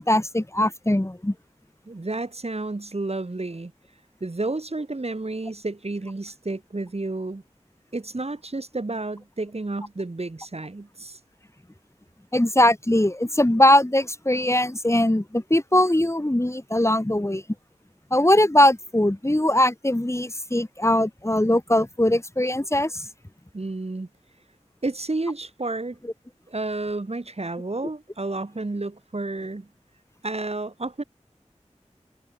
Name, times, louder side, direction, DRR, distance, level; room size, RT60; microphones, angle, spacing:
voice 1, 0.0-1.3 12.3-17.4 18.1-23.1, left 1 dB, 20° left, 6.3 m, -21 dB
voice 2, 1.9-3.7 4.2-7.4 7.9-11.2 23.5-24.1 24.8-26.0 26.5-29.7 30.2-31.0, right 2 dB, 55° right, 6.1 m, -31 dB
wide cardioid pair, 55°, 12 cm